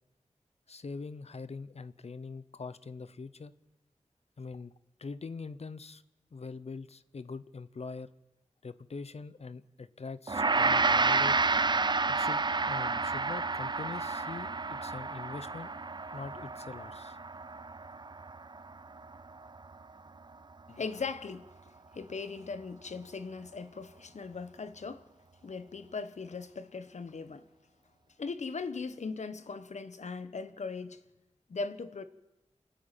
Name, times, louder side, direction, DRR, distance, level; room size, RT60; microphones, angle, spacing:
voice 1, 0.7-3.5 4.4-4.7 5.0-6.0 6.3-8.1 8.6-11.5 12.1-15.7 16.1-17.2, left 4 dB, 60° left, 0.8 m, -43 dB
Gong, 10.3-19.7, right 3 dB, 40° right, 0.6 m, -30 dB
voice 2, 20.7-21.5 21.9-25.1 25.4-27.4 28.2-31.0 31.5-32.0, left 4 dB, 80° left, 1.1 m, -39 dB
28.5 x 10.5 x 9.1 m
wide cardioid pair, 75°, 12 cm